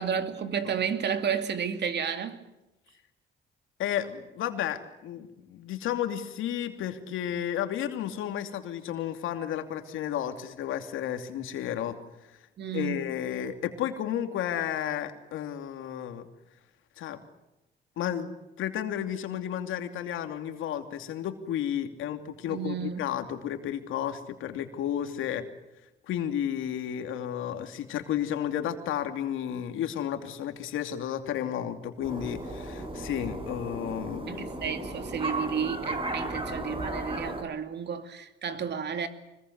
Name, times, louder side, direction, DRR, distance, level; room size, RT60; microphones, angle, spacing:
voice 1, 0.0-2.4 12.6-13.2 22.5-23.0 33.2-33.3 34.3-39.1, right 7 dB, 60° right, 2.6 m, -32 dB
voice 2, 3.8-12.0 12.7-16.2 17.0-17.2 18.0-18.3 18.6-25.4 26.1-34.4, left 10 dB, 85° left, 2.8 m, -32 dB
sound 1, 32.0-37.4, right 2 dB, 25° right, 5.8 m, -35 dB
25.0 x 21.5 x 8.1 m
cardioid pair, 90°, 20 cm